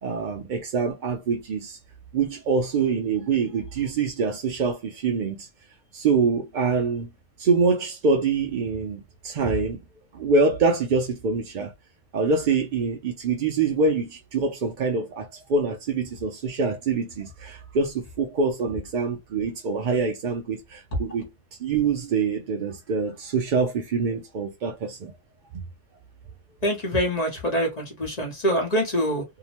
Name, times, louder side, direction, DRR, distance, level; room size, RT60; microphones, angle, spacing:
voice 1, 0.0-1.8 2.1-5.5 5.9-7.1 7.4-9.8 10.1-11.7 12.1-21.3 21.6-25.1, right 4 dB, 60° right, 0.5 m, -25 dB
voice 2, 26.6-29.2, equal, 35° left, 0.9 m, -25 dB
2.8 x 2.0 x 2.8 m
omnidirectional pair, 1.4 m